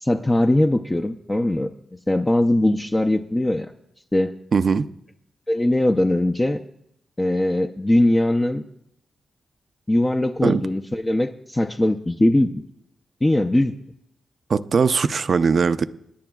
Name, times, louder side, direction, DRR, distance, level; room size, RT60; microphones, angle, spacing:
voice 1, 0.0-1.7 2.1-3.7 4.1-4.3 5.5-6.6 7.2-8.6 9.9-12.6 13.2-13.7, left 1 dB, 15° left, 5 dB, 0.5 m, -20 dB
voice 2, 4.5-4.9 10.4-10.6 14.5-15.8, right 5 dB, 50° right, 13 dB, 0.4 m, -20 dB
28.0 x 10.5 x 2.3 m, 0.76 s
wide cardioid pair, 110°, 0 cm